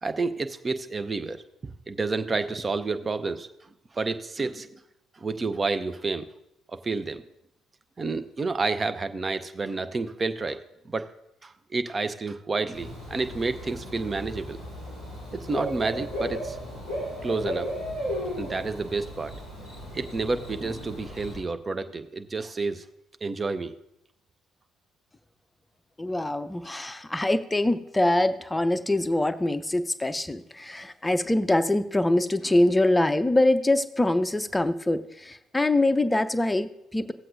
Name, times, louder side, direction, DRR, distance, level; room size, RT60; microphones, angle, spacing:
voice 1, 0.0-1.4 1.9-3.5 3.9-4.8 5.2-6.3 6.7-7.2 8.0-10.6 10.8-11.1 11.4-14.6 15.3-16.6 17.2-17.7 18.4-19.4 19.9-22.8 23.2-23.7, right 3 dB, 30° right, 10 dB, 0.6 m, -29 dB
Bird / Cricket, 12.7-21.4, equal, 85° right, 4.3 m, -35 dB
voice 2, 26.0-37.1, left 1 dB, 15° left, 12 dB, 0.5 m, -24 dB
17.0 x 7.5 x 2.6 m, 0.83 s
figure-of-eight pair, 45°, 0 cm